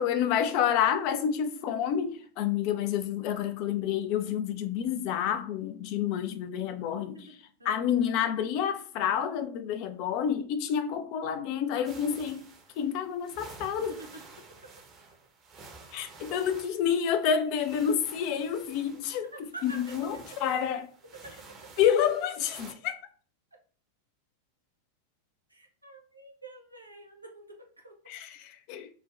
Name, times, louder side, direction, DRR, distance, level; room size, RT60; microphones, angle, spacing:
voice 1, 0.0-7.2 7.7-12.5 12.8-14.0 15.9-19.3 19.6-20.9 21.8-23.0 28.1-28.9, left 8 dB, 45° left, 0.3 m, -29 dB
sound 1, 11.8-22.7, right 3 dB, 30° right, 0.7 m, -51 dB
voice 2, 13.9-14.2 14.6-14.7 19.3-19.9 20.3-20.6 21.1-21.7 23.5-23.6 25.5-28.0, right 2 dB, 85° right, 0.6 m, -47 dB
4.3 x 2.2 x 2.4 m
figure-of-eight pair, 90°, 0 cm